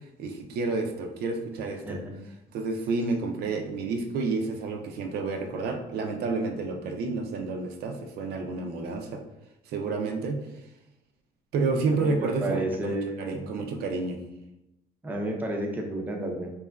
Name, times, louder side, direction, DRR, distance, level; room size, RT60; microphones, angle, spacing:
voice 1, 0.2-2.0 2.5-9.2 9.7-10.4 11.5-14.3, right 3 dB, 70° right, 4 dB, 0.4 m, -30 dB
voice 2, 1.8-2.1 11.9-13.5 15.0-16.5, right 1 dB, 10° right, 1 dB, 0.4 m, -31 dB
2.8 x 2.3 x 2.2 m, 0.89 s
cardioid pair, 110°, 17 cm